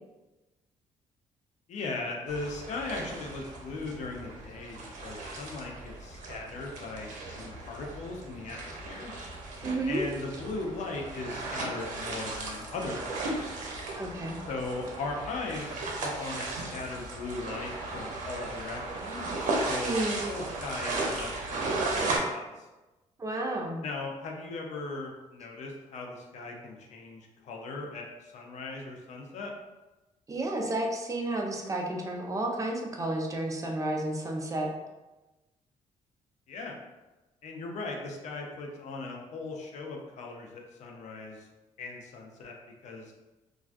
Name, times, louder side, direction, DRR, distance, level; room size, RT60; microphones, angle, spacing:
voice 1, 1.7-9.1 9.9-13.5 14.5-19.3 19.7-22.7 23.8-29.5 36.5-36.8 37.4-41.5 41.8-42.6 42.8-43.1, left 3 dB, 65° left, 1 dB, 0.5 m, -38 dB
sound 1, 2.3-22.2, right 2 dB, 80° right, 0.6 m, -36 dB
voice 2, 9.6-10.0 14.0-14.4 19.8-20.2 23.2-23.8 30.3-34.7, right 1 dB, 25° right, 1 dB, 0.4 m, -31 dB
2.3 x 2.2 x 2.5 m, 1.1 s
cardioid pair, 90°, 13 cm